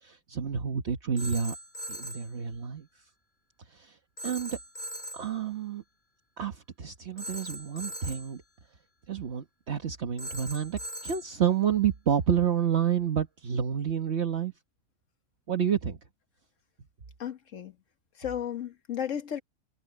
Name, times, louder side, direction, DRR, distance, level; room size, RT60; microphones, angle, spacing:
voice 1, 0.0-1.5 1.9-2.9 3.7-4.0 4.2-4.6 5.1-5.8 6.4-8.4 9.1-14.5 15.5-16.0, right 8 dB, 60° right, 1.5 m, -29 dB
Telephone, 1.2-2.3 4.2-5.3 7.2-8.3 10.2-11.3, right 1 dB, 40° left, 5.9 m, -40 dB
voice 2, 17.2-17.7 18.2-19.4, left 9 dB, 75° left, 1.5 m, -34 dB
omnidirectional pair, 1.3 m